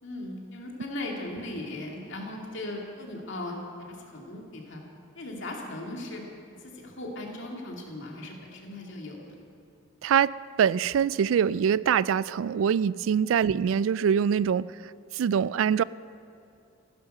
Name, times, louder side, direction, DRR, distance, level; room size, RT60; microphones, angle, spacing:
voice 1, 0.0-4.8 5.1-6.2 6.7-9.4 13.4-13.6, left 1 dB, 65° left, 0 dB, 2.4 m, -38 dB
voice 2, 10.0-14.7 15.1-15.8, right 8 dB, 70° right, 20 dB, 0.3 m, -24 dB
15.5 x 11.0 x 6.6 m, 2.6 s
head